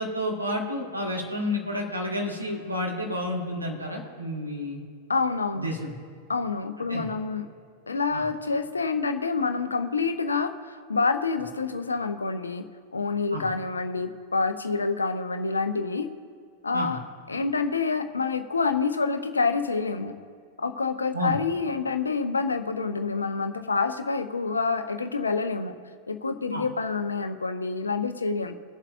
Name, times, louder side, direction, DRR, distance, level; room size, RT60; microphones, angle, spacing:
voice 1, 0.0-4.8 5.6-5.9 6.9-7.1 8.1-8.2 13.3-13.5 16.7-17.0 21.1-21.4 26.5-26.6, left 1 dB, 85° right, -1 dB, 1.7 m, -30 dB
voice 2, 5.1-5.7 6.3-7.5 7.9-12.6 12.9-16.1 16.6-17.0 17.3-20.2 20.6-25.7 26.1-28.5, left 4 dB, 75° left, 9 dB, 0.7 m, -27 dB
22.0 x 7.4 x 2.6 m, 2.2 s
figure-of-eight pair, 90°, 0 cm